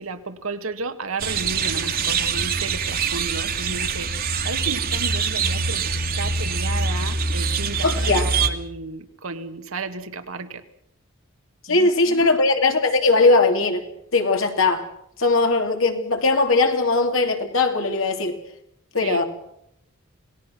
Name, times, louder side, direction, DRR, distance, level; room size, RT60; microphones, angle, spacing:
voice 1, 0.0-4.1 4.4-10.6 11.7-12.3 19.0-19.2, right 3 dB, 80° right, 8 dB, 1.8 m, -33 dB
sound 1, 1.2-8.5, right 5 dB, 45° right, 1.8 m, -24 dB
voice 2, 7.8-8.3 11.7-13.9 14.1-14.9 15.2-18.4 18.9-19.2, left 3 dB, 70° left, 5 dB, 2.9 m, -19 dB
27.5 x 19.0 x 6.2 m, 0.75 s
head